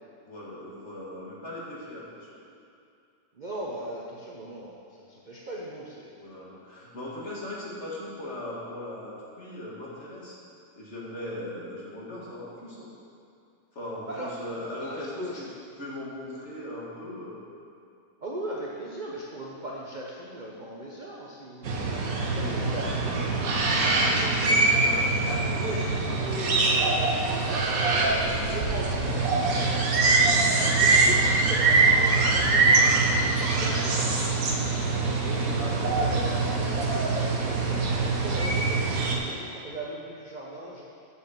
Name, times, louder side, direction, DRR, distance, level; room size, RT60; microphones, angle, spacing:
voice 1, 0.2-2.4 6.1-10.3 10.8-12.9 13.7-15.5 15.7-17.4 22.2-22.8 23.7-26.2 35.5-35.7, left 1 dB, 40° left, -6 dB, 2.0 m, -39 dB
voice 2, 3.3-6.2 14.1-14.3 14.8-15.4 18.2-21.9 22.2-23.7 25.6-25.9 26.2-29.8 30.7-34.4 35.2-40.8, right 1 dB, 40° right, -3 dB, 0.7 m, -38 dB
sound 1, 21.6-39.2, right 3 dB, 60° right, 1.3 m, -23 dB
7.2 x 6.4 x 7.0 m, 2.5 s
omnidirectional pair, 1.9 m